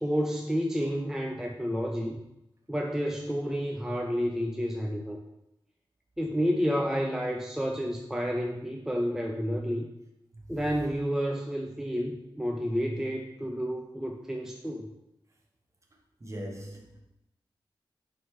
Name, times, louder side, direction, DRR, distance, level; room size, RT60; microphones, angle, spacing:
voice 1, 0.0-2.2 2.7-5.2 6.2-9.9 10.5-14.9, equal, 5° right, 1 dB, 0.5 m, -30 dB
voice 2, 16.2-17.0, equal, 35° right, 1 dB, 1.1 m, -40 dB
5.9 x 3.7 x 4.7 m, 0.87 s
wide cardioid pair, 100°, 9 cm